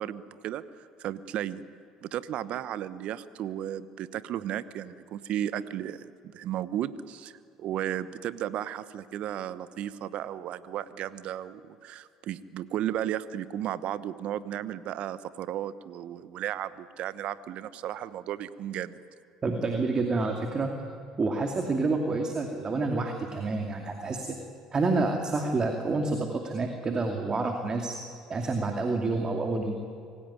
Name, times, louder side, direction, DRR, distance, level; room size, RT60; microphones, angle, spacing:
voice 1, 0.0-1.6 2.0-19.0, right 11 dB, 60° right, 16 dB, 1.0 m, -34 dB
voice 2, 19.4-20.7 21.2-24.4 24.7-28.0 28.3-29.7, right 3 dB, 35° right, 4 dB, 2.6 m, -28 dB
25.5 x 17.0 x 9.8 m, 2.5 s
hypercardioid pair, 65°, 2 cm